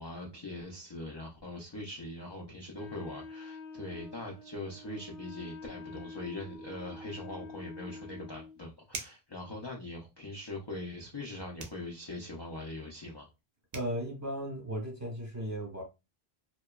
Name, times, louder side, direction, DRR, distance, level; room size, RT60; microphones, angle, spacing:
voice 1, 0.0-13.3, left 2 dB, 40° left, 0.4 m, -42 dB
Wind instrument woodwind instrument, 2.7-8.6, left 3 dB, 80° left, 0.9 m, -47 dB
sound 1, 8.9-9.3 11.6-11.9 13.4-13.5 13.7-14.0, right 4 dB, 50° right, 0.5 m, -42 dB
voice 2, 13.7-15.8, equal, 20° right, 0.9 m, -36 dB
2.8 x 2.1 x 2.2 m
omnidirectional pair, 1.0 m